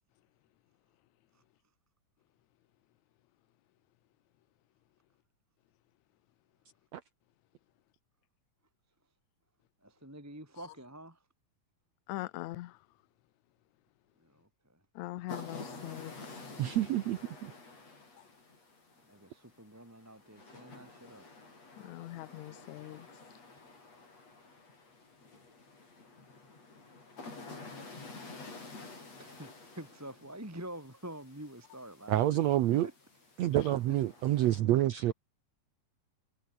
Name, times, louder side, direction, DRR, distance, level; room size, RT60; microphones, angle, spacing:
voice 1, 9.8-11.2 14.2-14.8 18.9-21.3 29.2-32.4 32.7-32.9 33.9-34.0 35.1-35.2, right 1 dB, 5° right, 2.2 m, -47 dB
voice 2, 12.1-12.8 14.9-16.4 21.8-23.1, left 17 dB, 75° left, 1.7 m, -42 dB
sound 1, 15.3-34.6, left 3 dB, 45° left, 8.0 m, -50 dB
voice 3, 16.6-17.5 32.1-32.9 33.4-35.1, right 13 dB, 75° right, 1.6 m, -28 dB
omnidirectional pair, 4.1 m